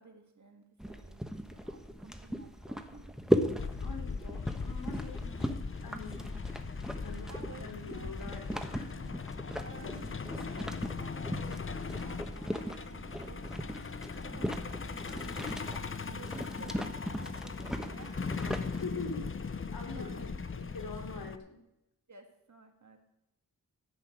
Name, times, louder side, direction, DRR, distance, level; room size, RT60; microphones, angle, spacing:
voice 1, 0.0-3.3 5.1-5.7 7.3-8.2 8.9-9.2 9.6-18.4 19.7-20.4 22.1-23.0, right 4 dB, 55° right, 4 dB, 2.0 m, -54 dB
sound 1, 0.8-18.8, equal, ahead, 1.2 m, -38 dB
Truck, 3.6-21.4, left 5 dB, 35° left, 0.8 m, -39 dB
voice 2, 3.8-5.3 5.8-6.2 7.0-8.9 9.3-9.5 9.8-10.0 18.6-19.4 19.7-21.6, left 3 dB, 70° left, 2 dB, 3.2 m, -44 dB
15.0 x 5.8 x 8.3 m, 0.84 s
wide cardioid pair, 80°, 35 cm